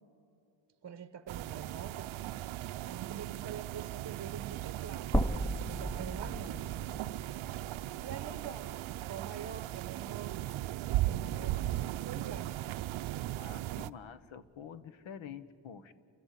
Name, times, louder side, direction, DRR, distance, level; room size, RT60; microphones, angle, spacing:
voice 1, 0.8-2.2 2.9-6.8 8.0-10.4 11.1-12.6, right 7 dB, 35° right, 11 dB, 0.9 m, -46 dB
sound 1, 1.3-13.9, right 14 dB, 75° right, 0.6 m, -37 dB
sound 2, 5.1-9.3 9.7-9.8 11.2-11.3, right 1 dB, 5° left, 0.6 m, -36 dB
voice 2, 13.4-15.9, left 8 dB, 75° left, 13 dB, 1.3 m, -47 dB
29.5 x 15.0 x 8.5 m, 2.6 s
cardioid pair, 105°, 47 cm